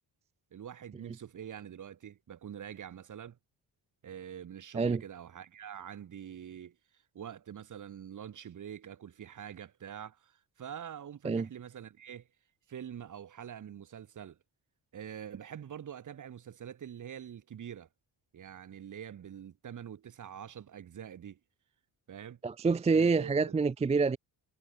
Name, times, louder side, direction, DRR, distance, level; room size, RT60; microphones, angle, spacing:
voice 1, 0.5-3.4 4.0-6.8 7.1-12.3 12.7-14.4 14.9-17.9 18.3-21.4 22.1-22.4 22.9-23.6, right 9 dB, 40° right, 1.1 m, -45 dB
voice 2, 22.4-24.2, right 4 dB, 15° right, 0.3 m, -27 dB
cardioid pair, 135°, 46 cm